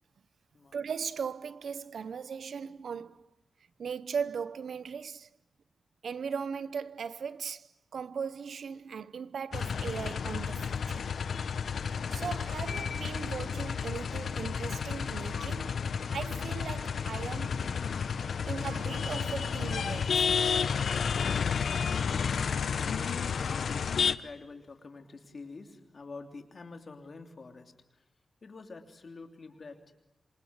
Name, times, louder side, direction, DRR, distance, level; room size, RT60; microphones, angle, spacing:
voice 1, 0.7-3.3 3.8-5.3 6.0-11.1 12.1-15.8 16.1-17.7 18.4-20.3, right 6 dB, 80° right, 0.9 m, -38 dB
sound 1, 9.5-24.2, left 6 dB, 75° left, 1.0 m, -31 dB
voice 2, 22.1-28.0 28.4-29.9, left 3 dB, 40° left, 3.2 m, -48 dB
27.5 x 26.5 x 8.1 m
wide cardioid pair, 180°, 0 cm